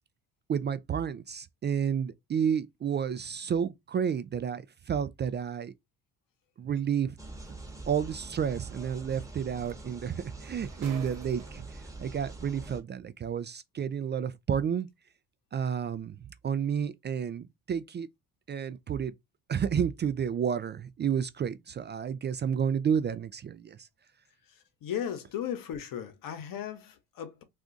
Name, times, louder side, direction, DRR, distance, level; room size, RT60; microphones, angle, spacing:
voice 1, 0.5-5.7 6.6-7.2 7.5-7.6 7.9-14.9 15.5-18.1 18.5-19.1 19.5-23.9, right 8 dB, 30° right, 0.3 m, -31 dB
sound 1, 7.2-12.8, right 2 dB, 10° right, 1.0 m, -44 dB
sound 2, 7.5-7.6 9.3-9.4 9.6-11.9 12.8-12.9, right 7 dB, 50° right, 1.1 m, -49 dB
voice 2, 24.8-27.4, left 9 dB, 60° left, 0.9 m, -36 dB
2.5 x 2.3 x 3.8 m
hypercardioid pair, 55°, 37 cm